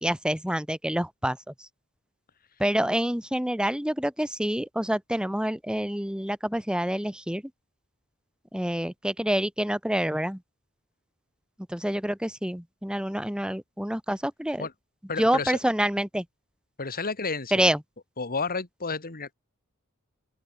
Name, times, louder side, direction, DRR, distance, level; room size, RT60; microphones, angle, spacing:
voice 1, 0.0-1.4 2.6-7.4 8.5-10.4 11.7-14.7 15.2-16.2 17.5-17.8, equal, 5° right, 2.1 m, -27 dB
voice 2, 15.1-15.6 16.8-17.5 18.2-19.3, left 4 dB, 40° left, 2.4 m, -31 dB
open air
head